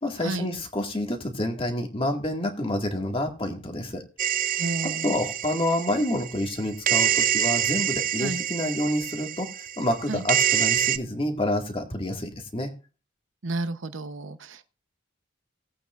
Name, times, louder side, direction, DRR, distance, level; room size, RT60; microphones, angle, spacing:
voice 1, 0.0-4.0 5.0-12.7, left 1 dB, 25° left, 1.9 m, -28 dB
sound 1, 4.2-6.5 6.9-11.0, right 10 dB, 40° right, 0.5 m, -26 dB
voice 2, 4.6-5.1 8.2-8.4 10.1-10.3 13.4-14.7, right 2 dB, 65° right, 0.9 m, -32 dB
19.0 x 8.5 x 2.5 m
head